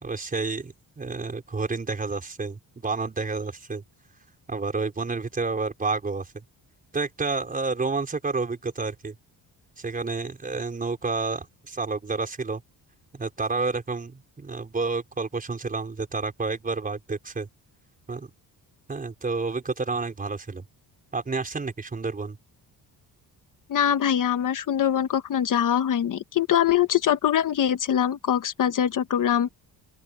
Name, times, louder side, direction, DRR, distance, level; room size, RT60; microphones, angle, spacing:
voice 1, 0.0-3.8 4.5-6.4 6.9-9.2 9.8-12.6 13.1-17.5 18.1-18.3 18.9-20.7 21.1-22.4, right 4 dB, 20° right, 4.9 m, -30 dB
voice 2, 23.7-29.5, left 9 dB, 55° left, 1.3 m, -23 dB
open air
cardioid pair, 165°, 39 cm